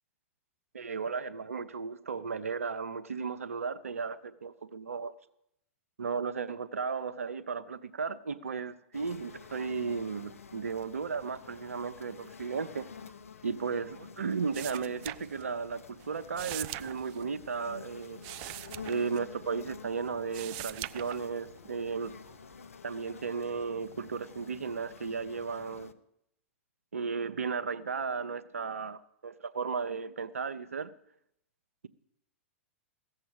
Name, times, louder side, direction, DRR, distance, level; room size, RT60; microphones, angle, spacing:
voice 1, 0.7-5.1 6.0-12.9 13.4-18.2 18.9-22.1 22.8-25.9 26.9-30.9, right 5 dB, 85° right, 13 dB, 0.8 m, -35 dB
sound 1, 8.9-25.9, left 6 dB, 85° left, 0.8 m, -50 dB
sound 2, 14.5-15.7 16.0-19.8 20.1-21.6 22.0-22.6, right 16 dB, 45° right, 0.5 m, -42 dB
15.5 x 7.8 x 8.8 m, 0.77 s
hypercardioid pair, 110°, 7 cm